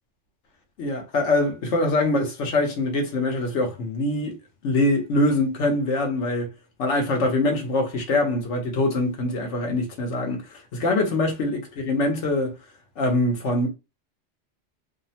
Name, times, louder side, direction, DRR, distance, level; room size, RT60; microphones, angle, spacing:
voice 1, 0.8-4.3 4.6-6.5 6.8-11.6 11.9-12.6 13.0-13.7, left 2 dB, 80° left, 1.1 m, -23 dB
2.8 x 2.0 x 2.8 m
omnidirectional pair, 1.2 m